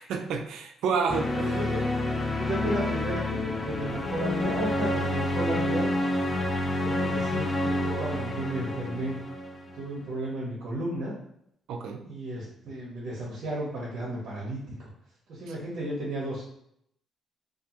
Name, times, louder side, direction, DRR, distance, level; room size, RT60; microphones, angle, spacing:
voice 1, 0.0-1.6 11.7-12.0 15.5-15.6, right 5 dB, 85° right, 4 dB, 0.3 m, -30 dB
sound 1, 1.1-9.9, left 1 dB, 25° left, 0.4 m, -29 dB
voice 2, 1.3-2.0 2.4-5.9 6.7-9.2 9.8-11.1 12.0-14.7 15.3-16.4, right 1 dB, 65° right, -5 dB, 0.7 m, -33 dB
2.3 x 2.3 x 2.8 m, 0.74 s
cardioid pair, 90°, 0 cm